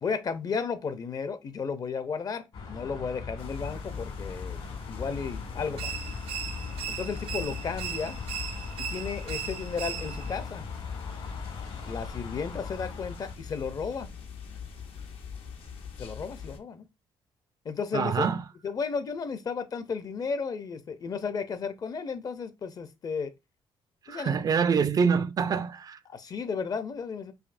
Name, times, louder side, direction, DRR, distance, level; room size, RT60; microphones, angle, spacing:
voice 1, 0.0-4.6 4.9-5.9 6.9-8.2 8.8-10.7 11.9-14.1 16.0-16.8 17.6-18.3 18.6-23.3 24.1-24.4 26.1-27.3, left 5 dB, 45° left, 0.6 m, -33 dB
sound 1, 2.5-13.4, left 4 dB, 65° left, 1.4 m, -40 dB
sound 2, 3.4-16.6, left 6 dB, 80° left, 0.8 m, -42 dB
sound 3, 5.8-10.4, right 9 dB, 80° right, 0.6 m, -38 dB
voice 2, 17.9-18.4 24.1-26.0, right 6 dB, 40° right, 0.3 m, -25 dB
5.0 x 2.6 x 2.5 m
cardioid pair, 105°, 9 cm